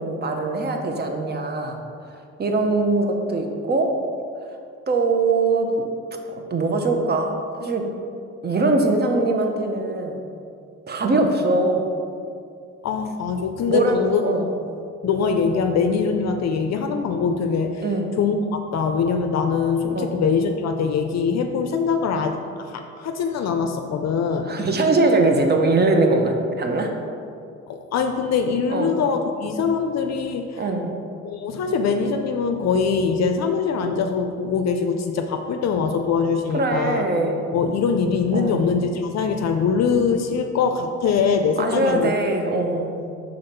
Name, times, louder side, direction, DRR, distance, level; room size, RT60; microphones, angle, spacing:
voice 1, 0.0-1.8 2.4-4.0 4.9-5.8 6.5-7.9 8.4-10.2 10.9-11.9 13.7-14.0 14.2-14.5 17.8-18.2 19.9-20.2 24.4-26.9 28.7-29.0 30.6-31.0 36.5-37.4 38.3-38.6 41.6-43.0, right 2 dB, 35° right, 4 dB, 0.8 m, -21 dB
voice 2, 12.8-14.2 15.0-17.8 18.2-24.5 27.7-30.6 31.2-37.0 37.5-42.1, left 5 dB, 60° left, 5 dB, 0.5 m, -23 dB
5.1 x 3.9 x 5.7 m, 2.4 s
cardioid pair, 90°, 30 cm